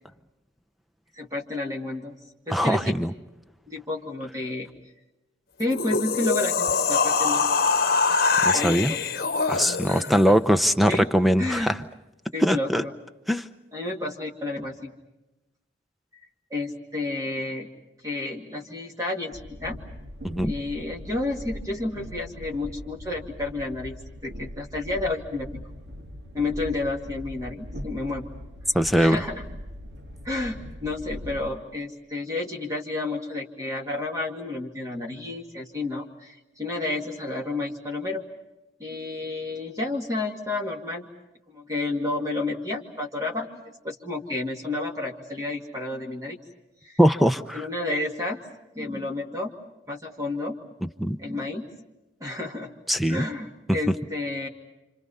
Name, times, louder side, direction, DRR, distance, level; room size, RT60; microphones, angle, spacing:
voice 1, 1.1-2.1 2.5-2.9 3.7-4.7 5.6-7.5 8.5-9.0 9.9-10.3 10.9-11.1 11.4-11.7 12.3-12.9 13.7-14.9 16.5-17.7 18.0-19.8 20.4-24.0 24.2-25.5 26.3-28.3 29.0-29.4 30.2-38.2 38.8-41.1 41.5-46.4 46.8-47.0 47.5-48.4 48.7-49.5 49.9-50.5 51.2-51.6 52.2-52.7 53.1-54.5, left 2 dB, 20° right, 0 dB, 2.3 m, -31 dB
voice 2, 2.5-3.1 8.4-8.9 9.5-11.8 12.4-12.8 13.3-13.5 20.2-20.5 28.7-29.3 47.0-47.6 50.8-51.2 52.9-53.2, equal, ahead, 9 dB, 0.8 m, -21 dB
sound 1, 5.6-10.2, left 4 dB, 50° left, 1.2 m, -23 dB
Train, 19.3-31.5, equal, 65° right, 1.6 m, -40 dB
29.5 x 27.0 x 5.6 m, 0.99 s
head